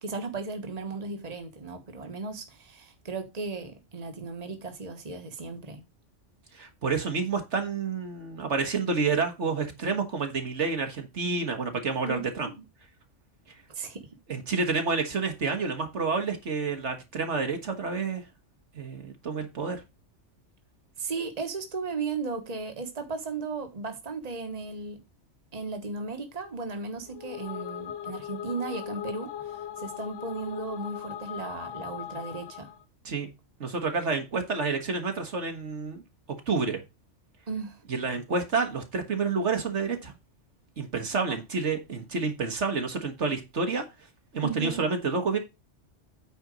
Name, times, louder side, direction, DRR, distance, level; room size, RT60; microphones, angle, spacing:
voice 1, 0.0-5.8 12.0-12.2 13.7-14.0 21.0-25.0 25.5-32.7 37.5-37.8 44.4-44.8, right 4 dB, 35° right, 1.4 m, -35 dB
voice 2, 6.5-12.5 14.3-18.2 18.8-19.8 33.1-33.3 33.6-36.0 36.5-36.8 37.9-40.1 40.8-43.8 44.3-45.4, right 4 dB, 70° right, 1.9 m, -29 dB
sound 1, 27.1-32.8, left 10 dB, 85° left, 1.1 m, -39 dB
9.1 x 4.4 x 5.1 m
omnidirectional pair, 1.2 m